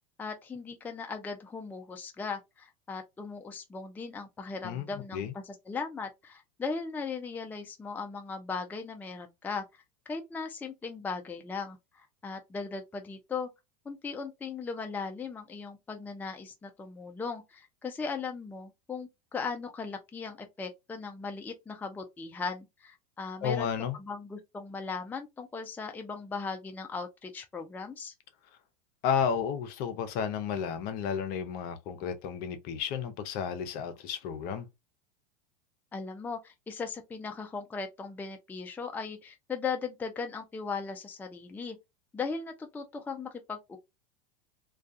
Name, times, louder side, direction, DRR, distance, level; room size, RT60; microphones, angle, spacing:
voice 1, 0.2-9.6 10.1-13.5 13.9-28.1 35.9-41.8 42.1-43.8, left 5 dB, 10° left, 0.4 m, -38 dB
voice 2, 23.4-24.0 29.0-34.7, left 7 dB, 50° left, 0.6 m, -32 dB
2.3 x 2.3 x 2.5 m
supercardioid pair, 110°, 20 cm